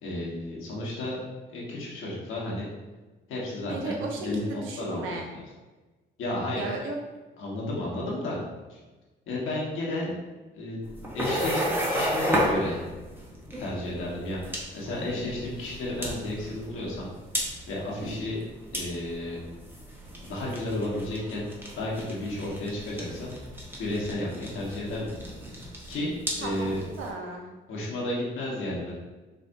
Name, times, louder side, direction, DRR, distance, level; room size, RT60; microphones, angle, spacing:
voice 1, 0.0-1.2 1.5-2.7 3.3-5.4 6.2-6.6 7.4-8.4 8.7-8.8 9.3-10.1 10.5-10.8 11.1-12.8 13.6-17.1 17.7-18.4 18.7-19.4 20.2-21.5 21.7-23.3 23.8-25.0 25.9-26.1 26.4-26.8 27.7-28.9, left 1 dB, 85° left, -5 dB, 1.5 m, -32 dB
voice 2, 3.7-5.3 6.5-7.0 26.4-27.5, right 3 dB, 85° right, 1 dB, 0.9 m, -35 dB
sound 1, 10.8-27.1, equal, 10° right, 1.1 m, -34 dB
5.1 x 3.4 x 2.7 m, 1.2 s
cardioid pair, 90°, 20 cm